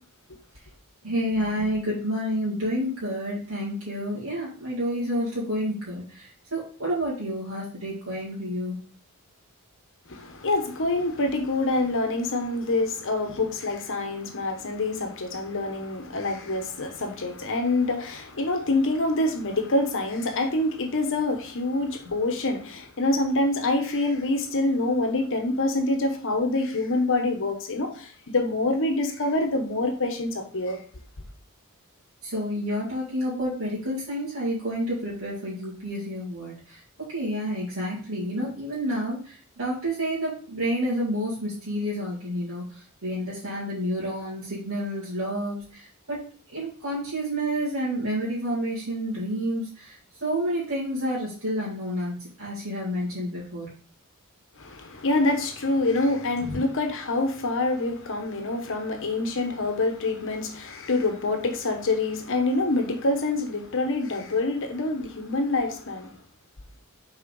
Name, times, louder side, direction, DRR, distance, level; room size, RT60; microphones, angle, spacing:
voice 1, 1.0-8.8 32.2-36.8 37.1-46.2 46.5-53.7 56.4-56.6, equal, 70° right, 2.3 m, -29 dB
voice 2, 10.1-30.8 54.6-66.1, left 2 dB, 60° left, 1.1 m, -26 dB
6.4 x 4.3 x 3.9 m
head